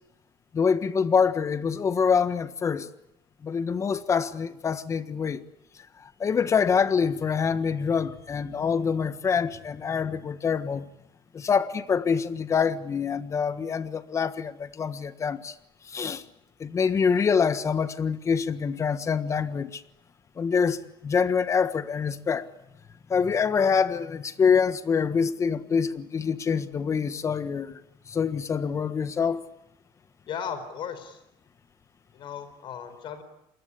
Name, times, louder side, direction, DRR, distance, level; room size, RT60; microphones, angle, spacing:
voice 1, 0.5-2.9 3.4-5.4 6.0-10.9 11.3-15.5 15.9-16.2 16.6-19.8 20.4-22.5 23.1-27.8 28.1-29.4, left 6 dB, 30° left, 1.4 m, -25 dB
voice 2, 30.3-31.2 32.1-33.2, left 7 dB, 50° left, 4.5 m, -36 dB
27.5 x 21.0 x 9.9 m
cardioid pair, 135°, 11 cm